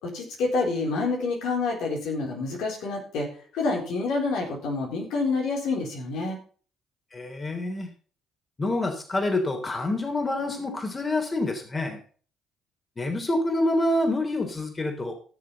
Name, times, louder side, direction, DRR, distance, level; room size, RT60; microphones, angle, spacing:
voice 1, 0.0-3.3 3.5-6.4, left 3 dB, 70° left, -1 dB, 4.0 m, -28 dB
voice 2, 7.1-7.9 8.6-12.0 13.0-15.2, left 2 dB, 30° left, 4 dB, 3.3 m, -27 dB
16.0 x 6.9 x 4.1 m, 0.42 s
hypercardioid pair, 55°, 0 cm